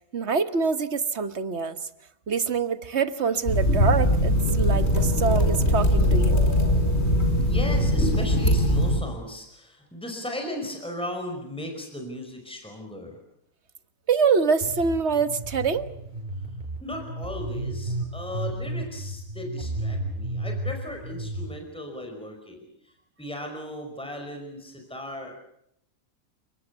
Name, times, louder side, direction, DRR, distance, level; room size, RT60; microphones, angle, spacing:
voice 1, 0.1-1.8 2.3-6.4 14.1-15.9, right 5 dB, 50° right, 12 dB, 1.6 m, -25 dB
sound 1, 3.5-9.0, equal, 50° left, 4.9 m, -21 dB
voice 2, 7.4-13.1 16.8-22.7 23.2-25.4, left 1 dB, 5° left, 3 dB, 5.1 m, -36 dB
sound 2, 14.6-21.5, right 1 dB, 35° right, 7.0 m, -33 dB
30.0 x 19.0 x 8.1 m, 0.74 s
omnidirectional pair, 1.5 m